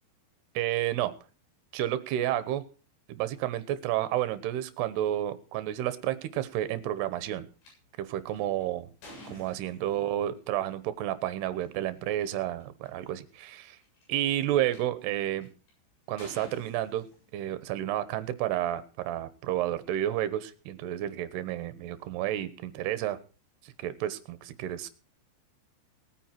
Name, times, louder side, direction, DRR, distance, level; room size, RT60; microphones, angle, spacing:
voice 1, 0.5-1.1 1.7-2.6 3.1-7.5 8.0-8.9 9.3-13.8 14.1-15.5 16.1-17.0 17.3-23.2 23.6-24.9, right 12 dB, 75° right, 13 dB, 2.9 m, -31 dB
sound 1, 7.6-7.7 8.3-10.2 11.5-11.7 12.3-12.4 12.6-13.1 13.8-14.8 15.4-15.7 16.2-17.6, left 1 dB, 90° left, 10.0 m, -49 dB
19.5 x 9.2 x 4.5 m, 0.37 s
omnidirectional pair, 5.3 m